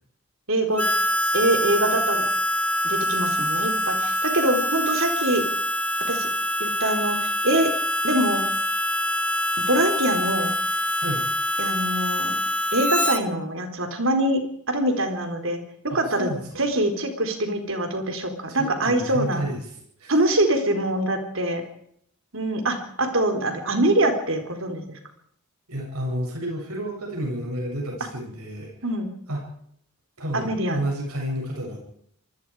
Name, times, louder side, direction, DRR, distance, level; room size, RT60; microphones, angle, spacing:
voice 1, 0.5-0.8 1.3-2.2 2.8-5.4 6.1-6.3 6.6-7.7 8.0-8.4 9.7-10.5 11.6-12.3 12.7-15.6 15.9-16.3 16.6-19.4 20.1-21.6 22.3-24.8 28.8-29.1 30.3-30.8, right 1 dB, 60° right, 5 dB, 4.3 m, -24 dB
Harmonica, 0.8-13.2, equal, 5° left, 1.4 m, -25 dB
voice 2, 15.9-16.6 18.5-19.6 20.0-20.1 25.7-28.7 29.3-29.4 30.2-31.8, right 1 dB, 90° right, -1 dB, 8.0 m, -30 dB
26.5 x 20.5 x 5.0 m, 0.69 s
head